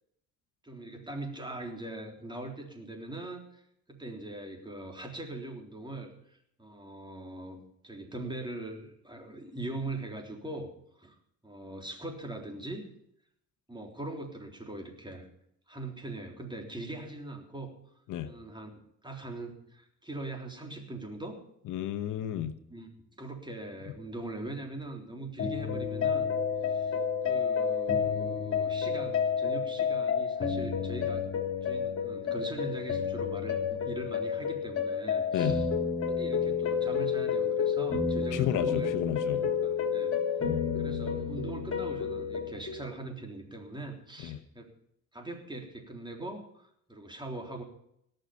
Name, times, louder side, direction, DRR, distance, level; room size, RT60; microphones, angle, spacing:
voice 1, 0.6-10.7 11.0-11.2 11.4-12.9 13.7-15.3 15.7-17.7 18.2-18.7 19.0-21.4 22.7-22.9 23.2-26.3 26.6-27.0 27.3-31.3 31.6-35.7 36.1-38.9 39.3-40.1 40.7-44.7 45.1-47.6, right 2 dB, 15° right, 3 dB, 3.6 m, -41 dB
voice 2, 21.7-22.5 35.3-35.6 38.3-39.5 44.2-44.4, left 11 dB, 85° left, 8 dB, 1.1 m, -32 dB
sound 1, 25.4-42.9, left 6 dB, 50° left, 3.3 m, -30 dB
18.5 x 6.7 x 8.4 m, 0.74 s
cardioid pair, 90°, 30 cm